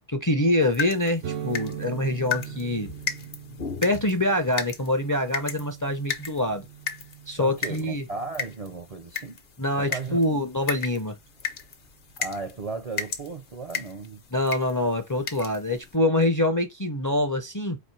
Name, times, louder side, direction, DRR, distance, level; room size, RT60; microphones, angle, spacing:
voice 1, 0.1-2.9 3.8-6.7 7.3-8.1 9.6-11.2 14.3-17.8, left 1 dB, 25° left, 0.5 m, -25 dB
sound 1, 0.6-16.0, left 6 dB, 60° left, 0.9 m, -36 dB
sound 2, 1.2-8.8, right 9 dB, 75° right, 0.8 m, -40 dB
voice 2, 7.4-9.4 9.7-10.2 12.2-14.2, right 4 dB, 45° right, 0.5 m, -35 dB
4.3 x 2.5 x 4.4 m
omnidirectional pair, 1.1 m